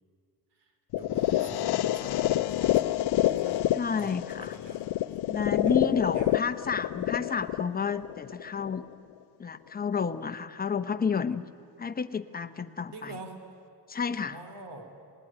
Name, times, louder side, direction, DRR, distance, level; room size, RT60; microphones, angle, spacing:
sound 1, 0.9-8.9, left 13 dB, 70° left, 0.7 m, -28 dB
voice 1, 0.9-3.0 3.3-3.7 4.0-4.9 5.6-6.4 12.9-13.4 14.3-14.9, right 3 dB, 80° right, 7 dB, 3.3 m, -46 dB
voice 2, 3.7-4.6 5.3-8.8 9.4-11.4 11.8-13.2 13.9-14.4, left 6 dB, 20° left, 10 dB, 0.8 m, -30 dB
26.5 x 19.5 x 9.9 m, 2.3 s
cardioid pair, 150°, 41 cm